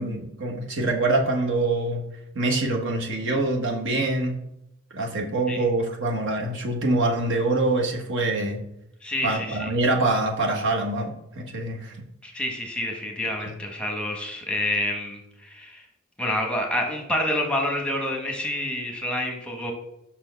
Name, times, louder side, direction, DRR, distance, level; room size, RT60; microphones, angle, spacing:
voice 1, 0.0-2.0 2.3-4.3 4.9-8.6 9.2-12.0 13.5-13.6, right 2 dB, 60° right, 1 dB, 1.0 m, -25 dB
voice 2, 9.0-9.7 12.2-15.8 16.2-19.7, left 1 dB, 5° left, 1 dB, 1.0 m, -28 dB
5.8 x 4.3 x 5.7 m, 0.84 s
head